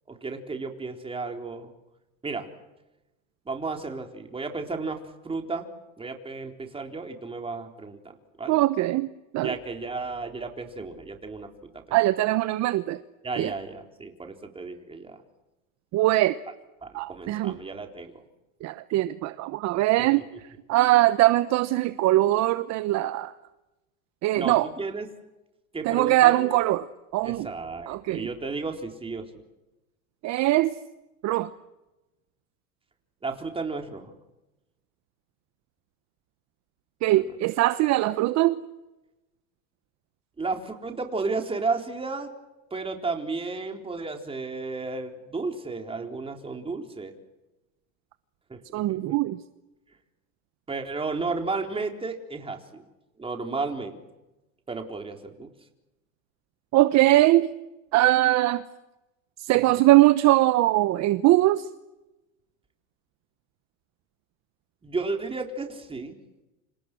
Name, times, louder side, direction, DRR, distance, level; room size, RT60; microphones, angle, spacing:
voice 1, 0.1-1.7 2.2-2.5 3.5-5.7 6.0-8.6 9.4-11.7 13.2-15.2 16.8-18.2 20.2-20.3 24.4-25.1 25.7-26.5 27.2-29.3 33.2-34.1 37.1-37.3 40.4-42.3 42.7-47.1 48.5-49.0 50.7-52.9 53.2-54.0 54.7-55.5 64.8-66.2, right 3 dB, 15° right, 3 dB, 4.1 m, -33 dB
voice 2, 8.5-9.1 9.3-9.5 11.9-13.0 13.4-13.5 15.9-16.4 16.9-17.6 18.6-20.2 20.7-23.3 24.2-24.7 25.8-26.9 27.1-27.5 27.9-28.3 30.2-30.8 31.2-31.5 37.0-38.6 48.7-49.4 56.7-57.5 57.9-58.6 59.4-61.7, right 16 dB, 40° right, 13 dB, 1.1 m, -21 dB
28.5 x 27.5 x 6.3 m, 1.0 s
supercardioid pair, 120°, 41 cm